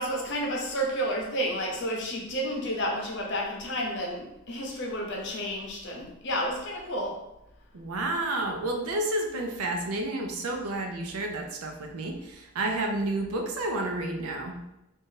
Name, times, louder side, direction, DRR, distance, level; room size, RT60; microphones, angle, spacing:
voice 1, 0.0-7.2, equal, 55° left, -1 dB, 0.7 m, -31 dB
voice 2, 7.7-14.5, right 2 dB, 80° right, 3 dB, 0.5 m, -30 dB
2.6 x 2.5 x 3.7 m, 0.88 s
head